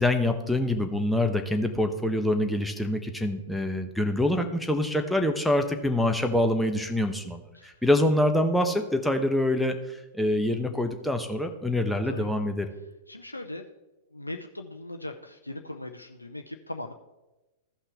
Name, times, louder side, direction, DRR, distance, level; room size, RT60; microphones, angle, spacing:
voice 1, 0.0-12.7, left 1 dB, ahead, 4 dB, 1.0 m, -25 dB
voice 2, 13.1-13.6 14.1-16.9, left 1 dB, 90° left, 5 dB, 0.5 m, -39 dB
15.0 x 5.6 x 3.5 m, 1.0 s
figure-of-eight pair, 100°, 0 cm